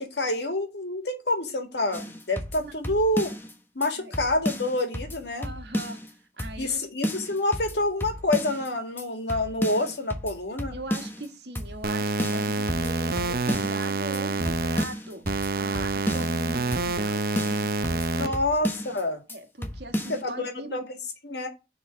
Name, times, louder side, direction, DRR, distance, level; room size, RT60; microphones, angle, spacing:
voice 1, 0.0-3.3 3.8-5.5 6.6-10.7 18.1-19.2 20.1-21.0 21.2-21.5, left 2 dB, 75° left, 1.9 m, -27 dB
sound 1, 1.9-3.5 3.8-3.9 4.1-6.1 6.4-6.8 7.0-8.7 9.0-9.1 9.3-11.3 11.6-11.9 12.2-13.9 14.1-14.2 14.5-16.4 16.7-17.1 17.4-19.0 19.3-19.4 19.6-20.2, equal, 10° left, 1.0 m, -33 dB
voice 2, 5.4-6.0 6.4-6.8 10.7-15.2 15.5-17.2 17.9-18.4 19.3-20.8, right 2 dB, 75° right, 1.5 m, -40 dB
sound 2, 11.8-14.8 15.3-18.3, right 3 dB, 55° right, 0.7 m, -27 dB
7.0 x 4.0 x 6.3 m
head